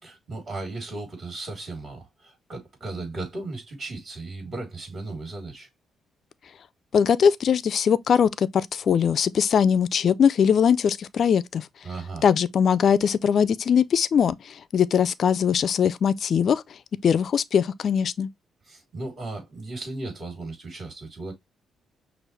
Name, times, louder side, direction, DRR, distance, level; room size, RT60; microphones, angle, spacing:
voice 1, 0.0-5.7 11.8-12.2 18.7-21.3, right 2 dB, 40° right, 3.3 m, -36 dB
voice 2, 6.9-11.7 12.2-16.6 17.0-18.3, left 7 dB, 55° left, 0.4 m, -21 dB
6.1 x 2.5 x 3.2 m
cardioid pair, 90°, 0 cm